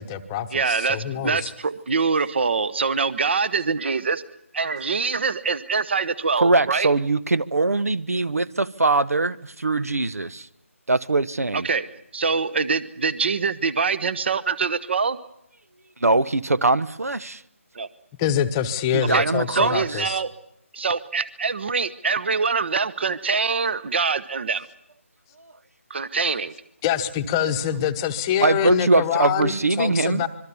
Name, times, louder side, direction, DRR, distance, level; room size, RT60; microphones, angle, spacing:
voice 1, 0.0-1.5 18.2-20.2 26.8-30.3, left 9 dB, 15° left, 8 dB, 1.0 m, -25 dB
voice 2, 0.5-4.2 4.5-6.9 11.5-11.9 12.1-15.2 17.7-17.9 19.1-20.3 20.7-24.7 25.9-26.5, right 5 dB, 50° right, 16 dB, 1.1 m, -24 dB
voice 3, 6.4-10.5 10.9-11.7 16.0-17.4 18.9-19.8 28.4-30.3, right 3 dB, 85° right, 17 dB, 1.2 m, -22 dB
25.5 x 23.0 x 7.1 m, 0.78 s
figure-of-eight pair, 160°, 8 cm